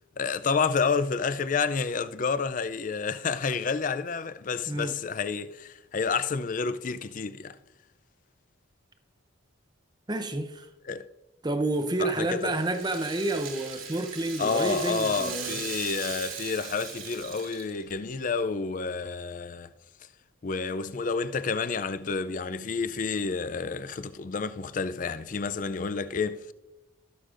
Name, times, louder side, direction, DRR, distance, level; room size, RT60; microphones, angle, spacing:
voice 1, 0.2-7.6 10.9-11.1 12.0-12.5 14.4-19.7 20.4-26.5, left 5 dB, 40° left, 0.4 m, -29 dB
voice 2, 4.7-5.0 10.1-10.7 11.4-15.6, right 2 dB, 20° right, 0.6 m, -29 dB
Rattle (instrument), 11.7-18.0, right 6 dB, 75° right, 2.4 m, -39 dB
19.5 x 6.6 x 2.5 m
head